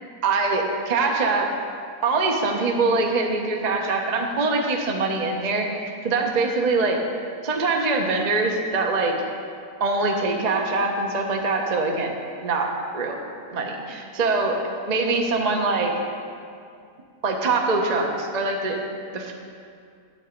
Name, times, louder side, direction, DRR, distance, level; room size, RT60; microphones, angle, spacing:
voice 1, 0.2-1.5 2.0-7.0 7.4-9.1 9.8-12.1 12.4-13.2 13.5-15.9 17.2-18.8 19.1-19.3, right 3 dB, 35° right, 1 dB, 0.7 m, -23 dB
8.8 x 8.1 x 5.1 m, 2.3 s
omnidirectional pair, 1.7 m